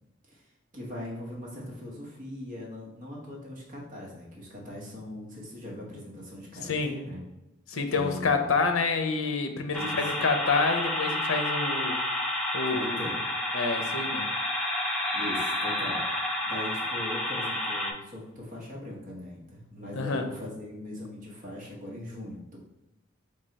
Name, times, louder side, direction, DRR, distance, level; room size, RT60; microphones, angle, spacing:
voice 1, 0.7-7.2 7.9-8.5 9.7-10.2 12.7-13.2 15.1-22.6, left 1 dB, 40° right, -3 dB, 1.2 m, -40 dB
voice 2, 7.7-11.9 12.5-13.0 13.5-14.3 19.9-20.2, left 4 dB, 85° left, 6 dB, 0.6 m, -28 dB
sound 1, 9.7-17.9, left 1 dB, 5° left, 0.5 m, -30 dB
3.6 x 3.4 x 3.9 m, 0.97 s
head